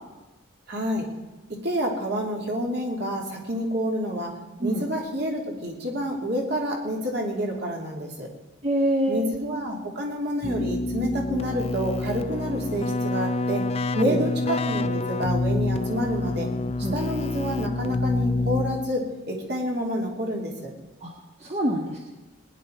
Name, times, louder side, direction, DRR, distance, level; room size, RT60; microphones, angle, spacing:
voice 1, 0.7-1.1 1.5-4.3 4.6-8.3 9.1-13.7 14.0-16.5 16.9-20.7, equal, 55° right, -1 dB, 3.0 m, -28 dB
voice 2, 8.6-9.2 13.9-14.2 16.8-17.0 21.0-21.1 21.4-22.0, right 1 dB, 30° right, -1 dB, 1.5 m, -25 dB
Keyboard (musical), 10.4-19.1, left 2 dB, 30° left, 0.5 m, -27 dB
20.0 x 10.5 x 4.6 m, 1.2 s
head